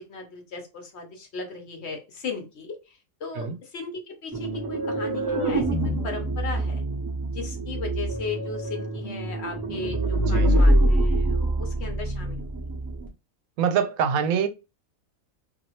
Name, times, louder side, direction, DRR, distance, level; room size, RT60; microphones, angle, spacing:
voice 1, 0.0-6.8 7.3-12.4, left 4 dB, 55° left, 1.0 m, -37 dB
sound 1, 4.3-13.1, right 1 dB, 20° right, 0.6 m, -25 dB
voice 2, 10.3-10.7 13.6-14.5, right 7 dB, 90° right, 1.0 m, -25 dB
2.8 x 2.7 x 2.9 m
omnidirectional pair, 1.4 m